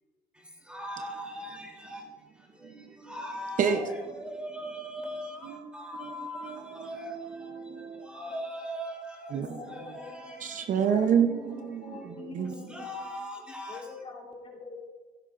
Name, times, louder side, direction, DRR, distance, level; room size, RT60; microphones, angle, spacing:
voice 1, 0.7-2.0 3.1-7.1 8.1-9.3 9.7-10.6 12.7-13.8, equal, 5° right, 3.2 m, -39 dB
voice 2, 2.6-2.9 3.6-3.8 5.4-5.7 6.0-6.1 6.4-8.1 9.3-9.8 10.4-12.7, right 7 dB, 50° right, 0.8 m, -30 dB
voice 3, 9.3-10.5 10.7-13.1 13.7-14.9, left 4 dB, 35° left, 3.2 m, -45 dB
16.0 x 12.0 x 2.5 m
cardioid pair, 110°, 17 cm